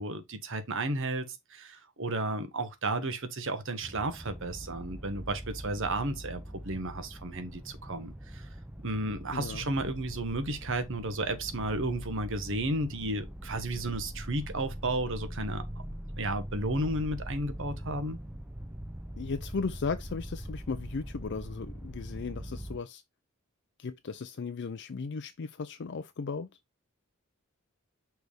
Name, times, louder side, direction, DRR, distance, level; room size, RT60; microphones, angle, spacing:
voice 1, 0.0-8.5 8.8-15.6 16.2-18.2, right 2 dB, 65° right, 1.4 m, -33 dB
sound 1, 3.8-22.8, equal, 5° right, 0.7 m, -42 dB
voice 2, 9.3-9.7 19.2-23.0 23.8-26.5, left 4 dB, 55° left, 0.5 m, -36 dB
6.2 x 3.5 x 5.0 m
head